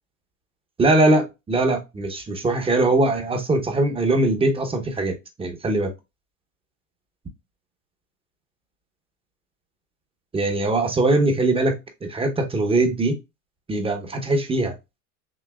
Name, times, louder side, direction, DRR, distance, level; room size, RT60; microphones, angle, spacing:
voice 1, 0.8-5.9 10.3-13.2 13.7-14.7, right 2 dB, 10° right, 0.9 m, -21 dB
6.1 x 2.6 x 2.2 m
hypercardioid pair, 115°, 45 cm